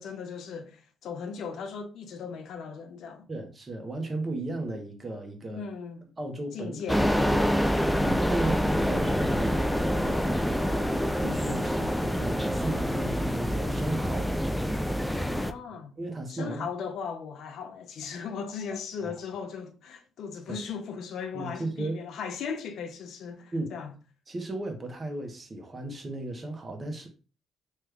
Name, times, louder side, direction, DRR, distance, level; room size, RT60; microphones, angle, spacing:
voice 1, 0.0-3.3 5.5-6.0 6.5-7.4 15.3-15.9 16.3-23.9, left 6 dB, 75° left, 0.5 m, -37 dB
voice 2, 3.3-5.6 6.0-7.0 7.3-10.4 10.7-14.7 15.7-16.7 19.0-19.1 20.5-20.6 21.3-22.0 23.5-23.8 24.3-27.1, right 2 dB, 30° right, 0.8 m, -36 dB
sound 1, 6.9-15.5, equal, 5° left, 0.3 m, -26 dB
3.0 x 2.3 x 3.3 m
cardioid pair, 90°, 0 cm